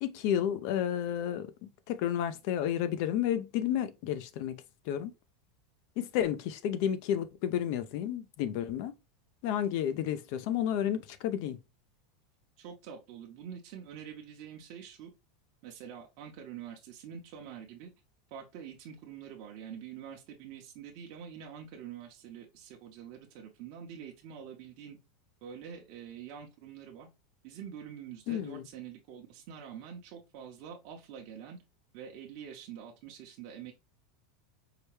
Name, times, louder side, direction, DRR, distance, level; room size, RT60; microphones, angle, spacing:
voice 1, 0.0-1.5 1.9-5.1 6.0-8.9 9.4-11.6 28.3-28.6, left 10 dB, 55° left, 0.5 m, -31 dB
voice 2, 12.6-15.1 15.6-17.9 18.3-25.0 25.4-27.1 27.4-31.6 31.9-33.7, right 8 dB, 50° right, 0.8 m, -46 dB
4.7 x 2.2 x 3.2 m
supercardioid pair, 145°, 2 cm